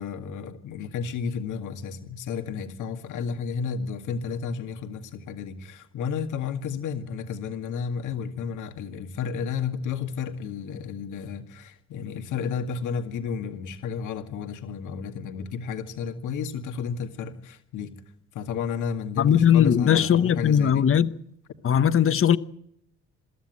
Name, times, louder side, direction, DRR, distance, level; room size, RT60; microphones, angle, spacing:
voice 1, 0.0-17.9 18.3-20.9, left 6 dB, 80° left, 2.1 m, -32 dB
voice 2, 19.2-21.1 21.6-22.4, left 9 dB, 45° left, 0.9 m, -19 dB
23.5 x 13.5 x 9.5 m
cardioid pair, 90°, 30 cm